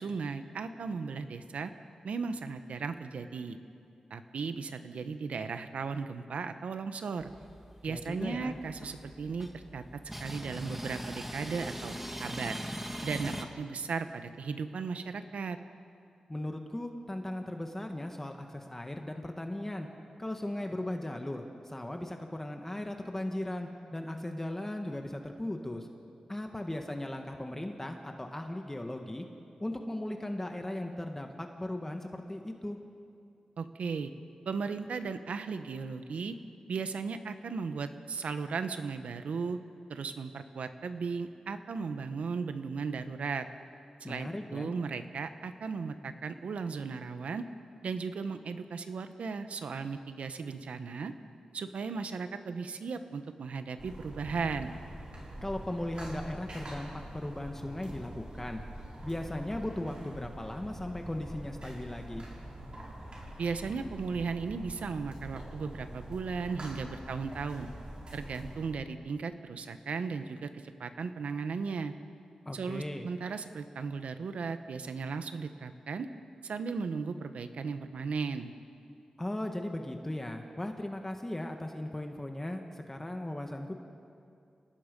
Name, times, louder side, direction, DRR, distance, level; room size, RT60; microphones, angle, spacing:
voice 1, 0.0-1.7 2.0-3.6 4.1-7.3 7.8-12.6 13.0-15.6 33.6-34.1 34.5-36.4 36.7-39.6 39.9-43.5 44.0-47.4 47.8-51.1 51.5-54.8 63.4-67.7 68.1-71.9 72.5-76.1 76.4-78.5, right 5 dB, 90° right, 9 dB, 1.1 m, -36 dB
sound 1, 7.2-13.4, equal, 10° right, 1.8 m, -41 dB
voice 2, 7.9-8.6 16.3-19.9 20.2-25.9 26.3-29.2 29.6-32.8 44.0-44.7 55.4-58.6 59.0-62.3 72.4-73.1 79.2-83.7, left 1 dB, 15° left, 4 dB, 1.6 m, -37 dB
sound 2, 53.8-68.7, right 1 dB, 50° right, 5.8 m, -45 dB
28.5 x 18.5 x 5.3 m, 2.4 s
wide cardioid pair, 80°, 2 cm